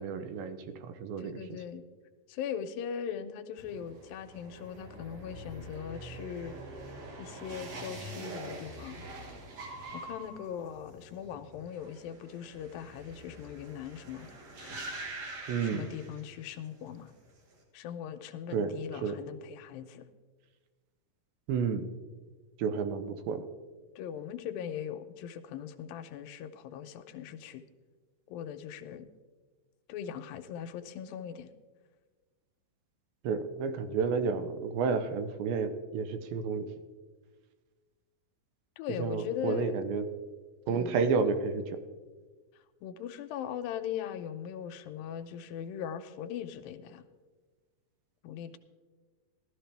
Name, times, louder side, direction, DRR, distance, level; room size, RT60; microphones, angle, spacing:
voice 1, 0.0-1.6 15.5-15.9 18.5-18.7 19.0-19.2 21.5-21.9 22.6-23.4 33.2-36.7 39.0-40.0 40.7-41.8, right 5 dB, 80° right, 9 dB, 2.5 m, -31 dB
voice 2, 1.2-1.8 2.3-6.5 7.2-9.0 9.9-14.3 14.6-14.8 15.3-17.1 17.7-20.1 24.0-27.6 28.3-29.1 29.9-31.5 38.8-39.8 40.7-41.0 42.8-47.0 48.2-48.6, left 8 dB, 85° left, 10 dB, 2.4 m, -40 dB
sound 1, 3.6-16.7 17.0-17.5, right 2 dB, 55° right, 2.7 m, -45 dB
14.5 x 13.0 x 3.4 m, 1.4 s
omnidirectional pair, 4.1 m